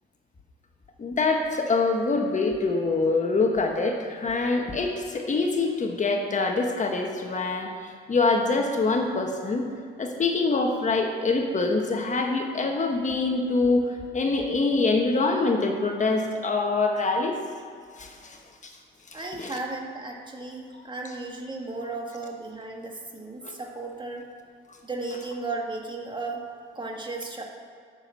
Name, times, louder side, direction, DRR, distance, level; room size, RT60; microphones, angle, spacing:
voice 1, 1.0-9.6 10.0-17.4 18.0-18.4 18.6-18.7 19.4-19.5 23.4-23.5, left 3 dB, 40° left, 3 dB, 1.3 m, -25 dB
voice 2, 19.1-24.2 24.8-26.4 26.7-27.4, right 3 dB, 25° right, 1 dB, 1.8 m, -35 dB
9.7 x 7.1 x 7.5 m, 2.2 s
cardioid pair, 90°, 20 cm